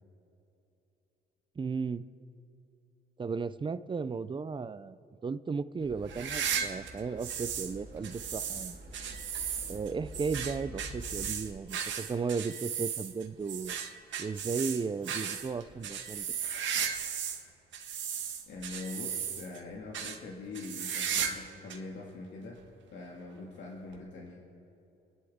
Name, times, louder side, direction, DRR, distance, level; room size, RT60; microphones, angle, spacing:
voice 1, 1.6-2.0 3.2-5.0 5.2-8.8 9.7-13.8 14.2-16.2, right 5 dB, 25° right, 14 dB, 0.5 m, -35 dB
sound 1, 5.8-11.2, right 1 dB, 50° right, 2.5 m, -47 dB
sound 2, 6.1-7.7 8.0-17.4 17.7-19.6 19.9-20.2 20.5-21.4 21.7-21.8 22.6-22.7 23.9-24.0, right 8 dB, 70° right, 1.6 m, -35 dB
voice 2, 18.5-22.6 22.9-24.4, left 3 dB, 70° left, -2 dB, 2.2 m, -43 dB
28.0 x 11.0 x 3.7 m, 2.8 s
cardioid pair, 90°, 20 cm